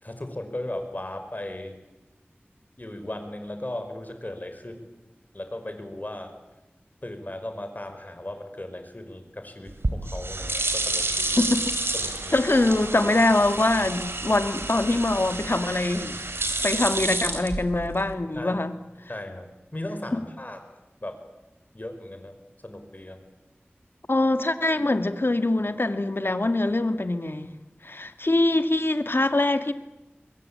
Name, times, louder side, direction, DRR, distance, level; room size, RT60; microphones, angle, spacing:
voice 1, 0.0-1.7 2.8-4.8 5.3-6.3 7.0-11.5 11.9-12.4 18.3-18.6 19.1-20.6 21.0-21.1 21.7-22.4 22.6-23.2, left 1 dB, 40° left, 5.1 m, -37 dB
sound 1, 9.7-18.1, right 2 dB, 70° right, 3.5 m, -30 dB
voice 2, 11.4-11.7 12.3-16.2 16.6-18.8 24.1-27.5 27.8-29.7, left 2 dB, 60° left, 1.9 m, -23 dB
24.5 x 22.0 x 8.6 m
wide cardioid pair, 40°, 4 cm